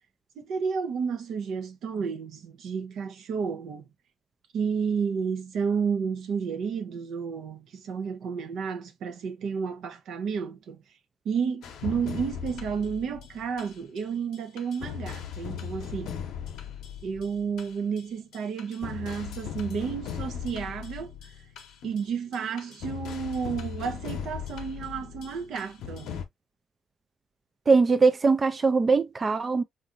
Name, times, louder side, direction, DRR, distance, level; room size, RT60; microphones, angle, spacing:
voice 1, 0.4-3.9 4.5-10.8 11.2-16.2 17.0-21.3 21.8-26.2, right 6 dB, 75° right, 0.7 m, -31 dB
sound 1, 11.6-14.0 14.3-18.0 18.3-26.2, left 8 dB, 85° left, 0.7 m, -38 dB
voice 2, 27.7-29.6, right 4 dB, 35° right, 0.4 m, -21 dB
3.8 x 2.5 x 2.5 m
cardioid pair, 90°, 0 cm